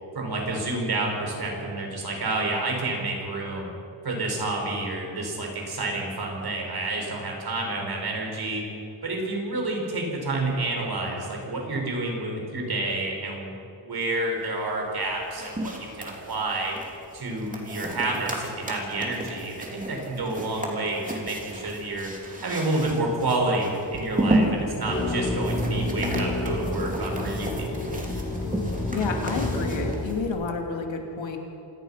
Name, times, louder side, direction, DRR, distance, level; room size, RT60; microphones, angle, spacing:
voice 1, 0.1-3.7 4.0-8.6 9.0-13.5 13.8-16.8 17.1-22.1 22.4-27.8, right 2 dB, 55° right, 1 dB, 5.6 m, -29 dB
sound 1, 14.9-30.3, right 1 dB, 20° right, 3.1 m, -33 dB
sound 2, 24.8-29.9, left 1 dB, 15° left, 6.7 m, -29 dB
voice 2, 28.9-31.4, left 4 dB, 90° left, 2 dB, 3.0 m, -30 dB
27.0 x 18.0 x 5.9 m, 2.9 s
wide cardioid pair, 130°, 44 cm